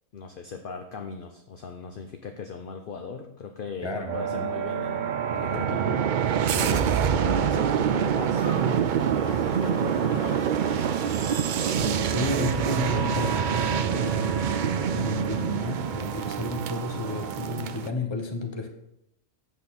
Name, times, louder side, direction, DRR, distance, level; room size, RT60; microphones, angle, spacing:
voice 1, 0.1-6.0 7.1-10.9, left 5 dB, 50° left, 5 dB, 0.7 m, -38 dB
voice 2, 3.8-4.5 5.4-5.7 6.5-7.1 8.0-8.1 11.6-18.7, left 2 dB, 25° left, 4 dB, 1.0 m, -33 dB
sound 1, 4.1-17.9, right 8 dB, 80° right, 0.4 m, -26 dB
sound 2, 8.4-15.6, right 2 dB, 65° left, 2.5 m, -40 dB
8.3 x 7.1 x 4.1 m, 0.82 s
omnidirectional pair, 1.4 m